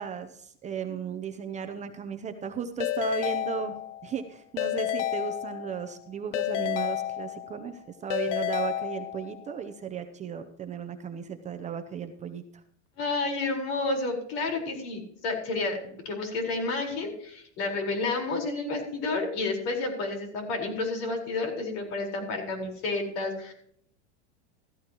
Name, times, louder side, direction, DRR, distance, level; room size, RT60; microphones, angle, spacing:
voice 1, 0.0-12.6, right 7 dB, 20° right, 8 dB, 0.7 m, -35 dB
Keyboard (musical) / Ringtone, 2.8-4.1 4.6-5.9 6.3-7.7 8.1-9.4, left 13 dB, 90° left, 0.7 m, -31 dB
voice 2, 13.0-23.5, left 3 dB, 55° left, 2 dB, 4.6 m, -30 dB
15.5 x 14.5 x 3.0 m, 0.66 s
supercardioid pair, 140°, 35 cm